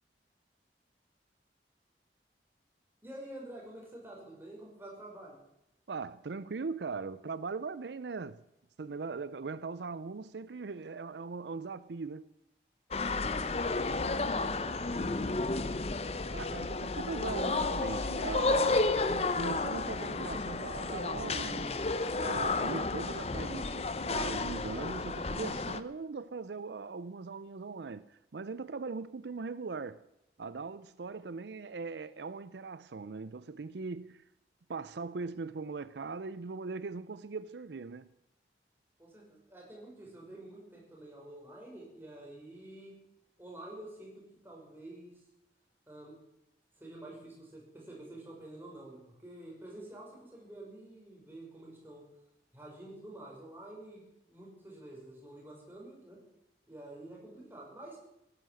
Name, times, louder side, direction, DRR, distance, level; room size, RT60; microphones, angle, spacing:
voice 1, 3.0-5.4 13.5-15.3 39.0-42.9 43.4-45.2 45.9-46.2 46.8-52.0 52.5-56.2 56.7-58.0, right 1 dB, 10° right, 5.7 m, -49 dB
voice 2, 5.9-8.4 8.8-12.3 16.3-21.7 22.1-30.0 30.4-34.2 34.7-38.1, right 4 dB, 80° right, 0.5 m, -40 dB
sound 1, 12.9-25.8, left 3 dB, 35° left, 0.7 m, -32 dB
17.5 x 10.5 x 7.7 m
head